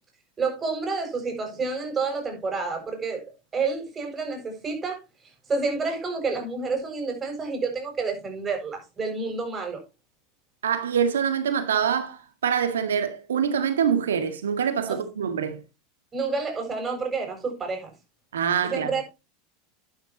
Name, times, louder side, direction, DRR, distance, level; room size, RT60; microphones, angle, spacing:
voice 1, 0.4-3.2 3.5-9.8 14.9-15.0 16.1-17.9 18.6-19.0, right 4 dB, 25° right, 7.2 m, -29 dB
voice 2, 10.6-15.6 18.3-18.9, right 7 dB, 75° right, 1.8 m, -25 dB
11.5 x 11.0 x 3.0 m
hypercardioid pair, 85°, 0 cm